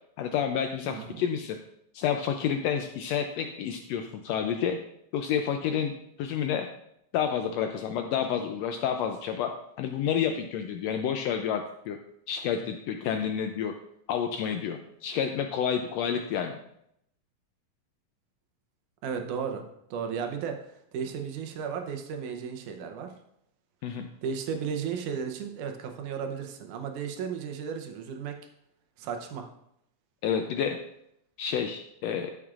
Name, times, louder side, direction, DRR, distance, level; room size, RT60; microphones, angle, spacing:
voice 1, 0.2-1.6 1.9-4.8 5.1-6.7 7.1-9.5 9.8-12.0 12.3-13.7 14.1-16.6 23.8-24.1 30.2-30.8 31.4-32.3, left 8 dB, 90° left, 5 dB, 1.4 m, -29 dB
voice 2, 0.8-1.2 19.0-19.6 19.9-23.1 24.2-28.4 29.0-29.5, right 7 dB, 80° right, 5 dB, 2.3 m, -34 dB
12.5 x 6.2 x 2.4 m, 0.76 s
omnidirectional pair, 3.5 m